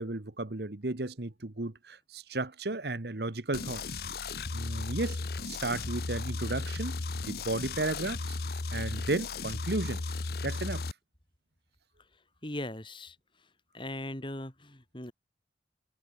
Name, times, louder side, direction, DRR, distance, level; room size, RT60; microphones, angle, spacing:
voice 1, 0.0-4.0 4.5-7.0 7.3-8.4 8.7-10.0 10.4-10.9, right 2 dB, 65° right, 1.4 m, -34 dB
sound 1, 3.5-10.9, left 3 dB, 55° left, 0.9 m, -35 dB
voice 2, 12.4-13.1 13.7-15.1, left 1 dB, 30° left, 3.2 m, -39 dB
head